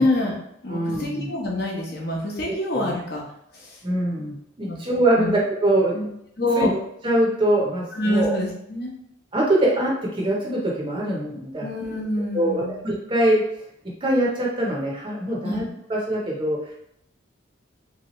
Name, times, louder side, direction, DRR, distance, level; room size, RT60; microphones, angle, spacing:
voice 1, 0.0-3.2 3.5-3.8 4.7-4.8 5.2-5.3 5.9-6.1 6.4-6.7 8.0-8.9 11.6-12.8 15.4-15.6, left 1 dB, 50° left, -2 dB, 0.9 m, -26 dB
voice 2, 0.7-1.3 2.5-3.0 3.8-6.1 6.5-8.4 9.3-11.7 12.3-13.4 14.0-15.6 15.9-16.6, right 1 dB, 25° right, -3 dB, 0.7 m, -23 dB
3.2 x 2.9 x 3.0 m, 0.75 s
head